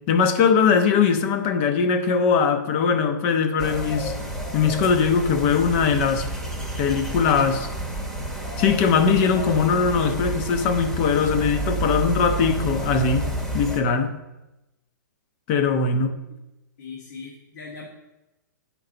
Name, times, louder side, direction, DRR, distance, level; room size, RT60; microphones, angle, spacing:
voice 1, 0.1-4.1 4.5-6.3 6.8-7.7 8.6-14.1 15.5-16.2, left 5 dB, 40° left, 8 dB, 0.8 m, -21 dB
sound 1, 3.6-13.8, right 2 dB, 5° left, 1.0 m, -30 dB
voice 2, 16.8-17.9, left 4 dB, 60° left, -2 dB, 1.4 m, -39 dB
8.9 x 4.6 x 3.9 m, 0.98 s
hypercardioid pair, 130°, 10 cm